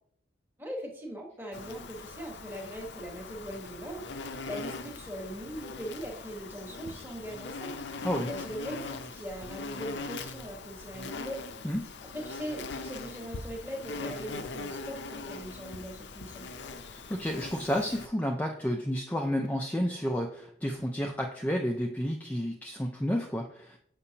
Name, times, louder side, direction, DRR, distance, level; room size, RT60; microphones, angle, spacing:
voice 1, 0.6-7.7 8.3-11.5 12.1-16.5, equal, 10° right, 0 dB, 1.2 m, -40 dB
Insect, 1.5-18.1, left 3 dB, 65° left, 0.6 m, -41 dB
voice 2, 16.9-23.8, equal, 10° left, 2 dB, 0.4 m, -31 dB
6.8 x 5.9 x 2.8 m, 0.65 s
head